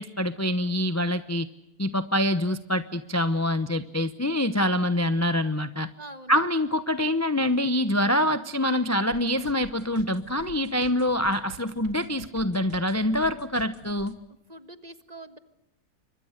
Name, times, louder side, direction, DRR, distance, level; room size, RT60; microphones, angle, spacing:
voice 1, 0.0-1.5 1.8-5.9 6.3-14.1, left 1 dB, 15° left, 11 dB, 0.7 m, -25 dB
voice 2, 6.0-6.4 14.5-15.4, right 2 dB, 25° right, 10 dB, 1.5 m, -44 dB
sound 1, 9.1-14.1, right 4 dB, 85° right, 2.4 m, -47 dB
29.5 x 25.0 x 6.5 m, 0.87 s
omnidirectional pair, 1.6 m